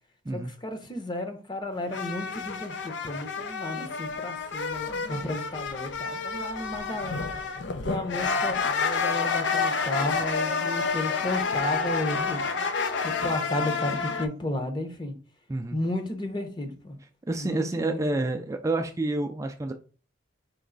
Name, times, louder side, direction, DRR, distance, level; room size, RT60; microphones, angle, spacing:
voice 1, 0.3-7.3 7.8-12.4 13.0-15.1 15.7-17.0 17.4-18.0, left 1 dB, 25° left, 0.8 m, -33 dB
sound 1, 1.9-14.3, left 5 dB, 75° left, 0.6 m, -29 dB
voice 2, 17.3-19.7, right 2 dB, 15° right, 0.3 m, -28 dB
4.5 x 3.0 x 3.9 m
head